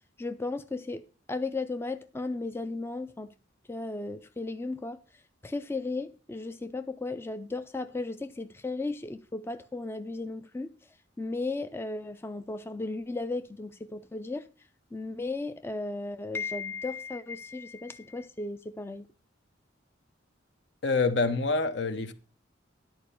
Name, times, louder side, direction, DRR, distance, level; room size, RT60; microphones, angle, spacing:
voice 1, 0.2-1.0 1.3-3.3 3.7-5.0 5.4-10.7 11.2-14.5 14.9-19.1, left 3 dB, 15° left, 0.3 m, -35 dB
voice 2, 20.8-22.1, left 3 dB, 65° left, 0.8 m, -26 dB
11.0 x 4.5 x 6.8 m
head